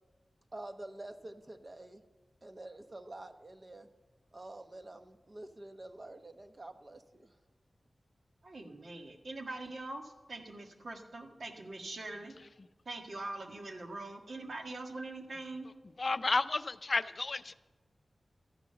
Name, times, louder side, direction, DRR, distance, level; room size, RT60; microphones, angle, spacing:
voice 1, 0.5-2.0 2.4-3.9 4.3-7.3, right 2 dB, 35° right, 7 dB, 1.0 m, -48 dB
voice 2, 8.4-12.3 12.9-15.7, right 2 dB, 65° right, 3 dB, 1.7 m, -43 dB
voice 3, 16.0-17.5, left 3 dB, 50° left, 13 dB, 0.5 m, -31 dB
14.0 x 10.0 x 6.9 m, 1.2 s
wide cardioid pair, 110°, 0 cm